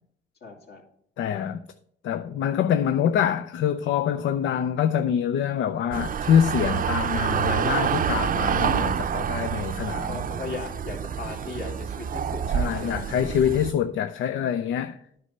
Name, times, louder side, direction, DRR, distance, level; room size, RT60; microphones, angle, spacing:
voice 1, 0.4-0.8 10.1-13.1, left 3 dB, 55° left, 2.5 m, -37 dB
voice 2, 1.2-1.6 2.0-10.1 12.5-15.0, left 9 dB, 75° left, 0.5 m, -25 dB
sound 1, 5.9-13.7, right 8 dB, 45° right, 0.5 m, -27 dB
9.7 x 5.4 x 5.5 m
cardioid pair, 90°, 20 cm